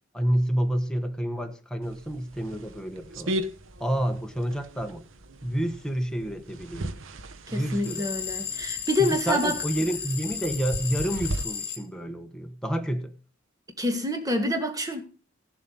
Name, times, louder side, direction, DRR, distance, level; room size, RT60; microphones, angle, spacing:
voice 1, 0.1-3.4 3.8-5.0 5.4-6.9 7.5-8.1 9.0-13.1, right 1 dB, 5° left, 1.2 m, -29 dB
sound 1, 1.8-11.4, right 1 dB, 70° right, 1.0 m, -38 dB
voice 2, 7.5-9.6 13.8-15.0, left 1 dB, 15° right, 2.2 m, -27 dB
sound 2, 7.8-11.8, left 8 dB, 50° left, 1.7 m, -34 dB
15.5 x 7.3 x 5.3 m
head